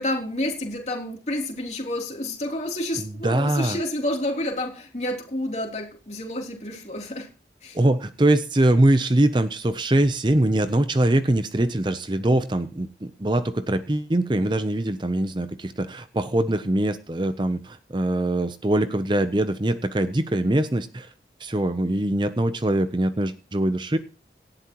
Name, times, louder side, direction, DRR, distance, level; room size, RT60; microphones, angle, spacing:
voice 1, 0.0-7.3 7.6-7.8, left 1 dB, 40° left, 1 dB, 3.3 m, -29 dB
voice 2, 3.0-3.8 7.7-21.1 21.4-24.0, right 1 dB, 25° right, 11 dB, 0.6 m, -23 dB
18.0 x 12.0 x 3.0 m, 0.35 s
head